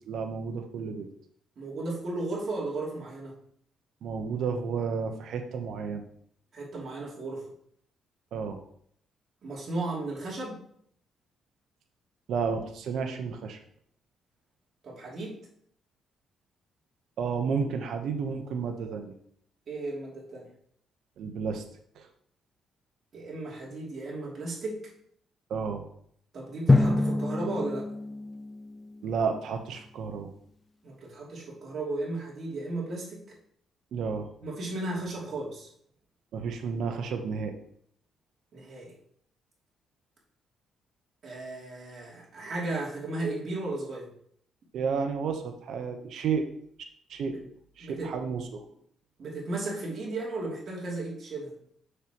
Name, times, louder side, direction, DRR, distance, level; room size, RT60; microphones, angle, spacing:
voice 1, 0.1-1.1 4.0-6.0 8.3-8.6 12.3-13.6 17.2-19.2 21.2-21.6 22.0-22.1 25.5-25.9 29.0-30.3 33.9-34.3 36.3-37.5 44.7-46.4 47.1-47.4 47.8-48.6, right 5 dB, 70° right, 5 dB, 0.9 m, -31 dB
voice 2, 1.6-3.3 6.5-7.5 9.4-10.6 14.8-15.4 19.7-20.5 23.1-24.8 26.3-27.9 30.8-33.3 34.4-35.7 38.5-39.0 41.2-44.1 47.8-48.1 49.2-51.5, right 2 dB, 50° right, -5 dB, 2.8 m, -35 dB
Drum, 26.7-29.4, left 2 dB, 20° left, 0.5 m, -26 dB
6.6 x 6.6 x 3.0 m, 0.65 s
cardioid pair, 90°, 0 cm